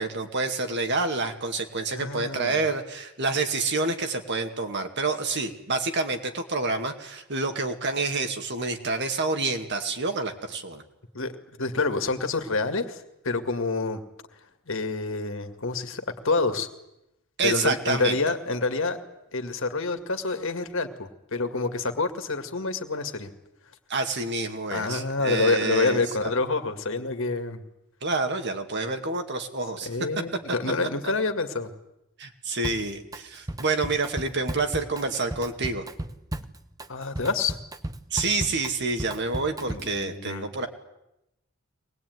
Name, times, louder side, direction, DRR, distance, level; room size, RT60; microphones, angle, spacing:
voice 1, 0.0-10.8 17.4-18.2 23.9-26.3 28.0-29.9 32.2-35.8 38.1-40.7, right 3 dB, 55° right, 6 dB, 2.3 m, -28 dB
voice 2, 1.9-2.6 11.1-14.0 14.7-16.7 17.4-19.0 19.3-23.3 24.7-27.6 29.8-31.7 36.9-37.6 39.7-40.5, left 3 dB, 65° left, 7 dB, 2.2 m, -27 dB
Drum kit, 32.6-33.2 33.5-40.0, right 1 dB, 15° right, 1.0 m, -35 dB
23.5 x 20.0 x 9.5 m, 0.87 s
head